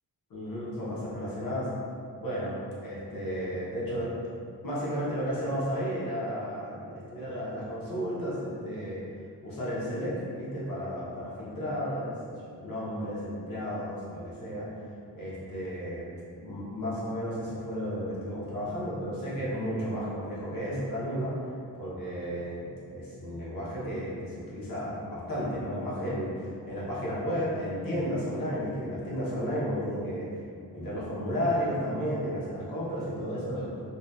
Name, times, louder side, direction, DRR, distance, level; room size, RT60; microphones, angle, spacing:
voice 1, 0.3-1.7 2.2-4.1 4.6-9.0 9.4-12.1 12.6-14.7 15.1-16.1 16.4-21.3 21.8-30.3 30.7-33.7, equal, 65° left, -8 dB, 0.9 m, -33 dB
2.7 x 2.3 x 2.2 m, 2.4 s
wide cardioid pair, 135°, 37 cm